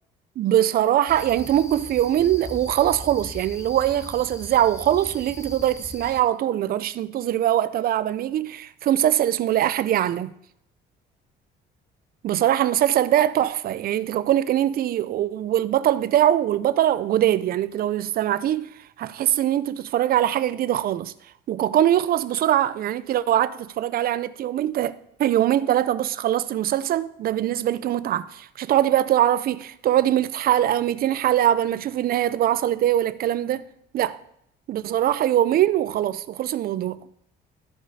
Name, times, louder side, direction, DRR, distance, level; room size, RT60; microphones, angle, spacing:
voice 1, 0.4-10.3 12.2-18.7 19.0-21.1 21.5-33.7 33.9-34.2 34.7-37.0, right 12 dB, 55° right, 0.5 m, -22 dB
sound 1, 1.1-6.2, left 2 dB, 15° left, 0.7 m, -40 dB
13.0 x 5.0 x 4.1 m
cardioid pair, 100°, 19 cm